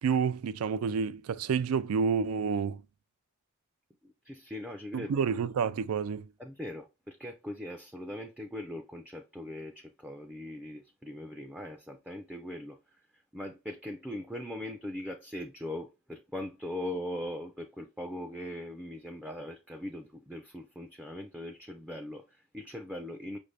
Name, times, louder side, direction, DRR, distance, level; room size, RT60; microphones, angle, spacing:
voice 1, 0.0-2.8 4.9-6.3, right 6 dB, 85° right, 0.4 m, -29 dB
voice 2, 4.0-5.1 6.4-12.8 13.3-23.4, left 1 dB, 5° right, 0.4 m, -40 dB
5.7 x 2.6 x 3.2 m
head